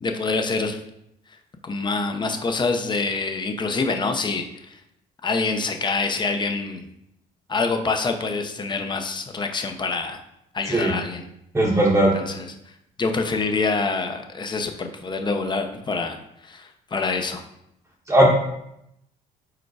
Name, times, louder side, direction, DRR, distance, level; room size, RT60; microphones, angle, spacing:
voice 1, 0.0-0.8 1.6-4.8 5.2-6.9 7.5-10.2 10.5-11.2 12.1-12.5 13.0-16.2 16.4-17.4, left 4 dB, 25° left, 6 dB, 0.8 m, -26 dB
voice 2, 11.5-12.1 18.1-18.3, right 1 dB, 15° right, -4 dB, 1.0 m, -17 dB
4.9 x 4.5 x 4.8 m, 0.79 s
cardioid pair, 110°, 17 cm